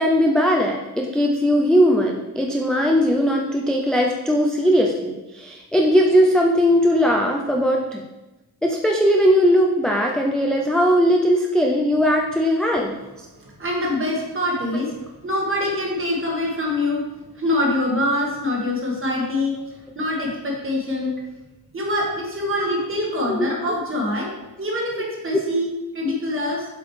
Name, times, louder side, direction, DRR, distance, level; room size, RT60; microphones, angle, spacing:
voice 1, 0.0-8.0 8.6-13.0 22.6-22.7 23.2-23.5, equal, ahead, -1 dB, 0.3 m, -19 dB
voice 2, 13.4-15.0 15.2-17.0 17.4-19.5 19.9-21.1 21.7-24.3 24.6-26.7, left 1 dB, 35° right, -2 dB, 1.6 m, -24 dB
7.8 x 5.0 x 3.2 m, 1.1 s
wide cardioid pair, 165°, 39 cm